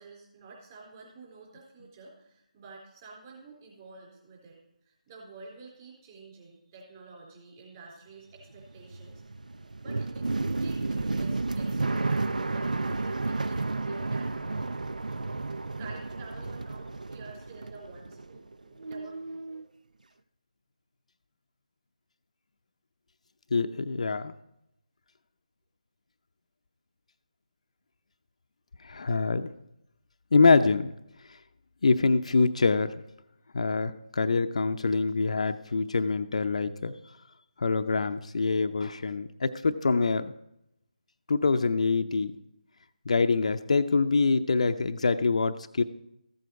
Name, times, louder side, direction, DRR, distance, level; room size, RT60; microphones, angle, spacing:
voice 1, 0.0-4.6 4.9-9.2 9.8-15.2 15.8-19.6, right 3 dB, 25° right, -2 dB, 4.1 m, -50 dB
sound 1, 8.4-18.5 18.8-19.6, right 3 dB, 75° right, 0.6 m, -32 dB
voice 2, 23.5-24.3 28.8-29.5 30.3-30.9 31.8-32.9 33.5-36.9 37.6-40.3 41.3-42.3 43.1-45.8, left 4 dB, 55° left, 9 dB, 0.6 m, -25 dB
14.5 x 8.1 x 4.7 m, 0.84 s
figure-of-eight pair, 155°, 4 cm